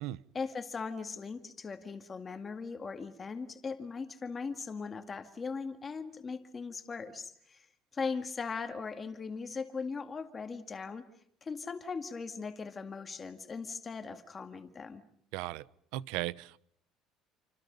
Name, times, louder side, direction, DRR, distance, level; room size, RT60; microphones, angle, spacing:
voice 1, 0.3-7.7 7.9-11.1 11.4-15.0, left 5 dB, 20° left, 7 dB, 2.2 m, -39 dB
voice 2, 15.3-15.6 15.9-16.6, right 16 dB, 85° right, 18 dB, 0.9 m, -36 dB
29.0 x 26.5 x 5.5 m, 0.68 s
cardioid pair, 175°, 0 cm